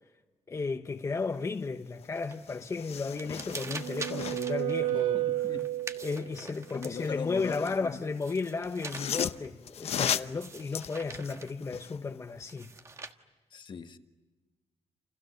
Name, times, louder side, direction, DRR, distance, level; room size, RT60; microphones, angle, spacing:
voice 1, 0.5-5.3 6.0-12.7, left 4 dB, 25° left, 1.0 m, -34 dB
sound 1, 2.0-2.1 2.4-4.6 6.8-7.8 8.6-12.0 12.4-12.5, left 9 dB, 65° left, 0.9 m, -36 dB
sound 2, 2.1-2.5 2.8-7.3 7.9-9.5 10.1-11.6 12.5-13.1, right 3 dB, 25° right, 1.5 m, -45 dB
sound 3, 3.3-6.3, right 13 dB, 80° right, 2.0 m, -32 dB
voice 2, 4.9-5.7 6.7-8.0 13.5-14.0, left 6 dB, 45° left, 1.6 m, -40 dB
29.0 x 29.0 x 6.8 m
cardioid pair, 130°, 11 cm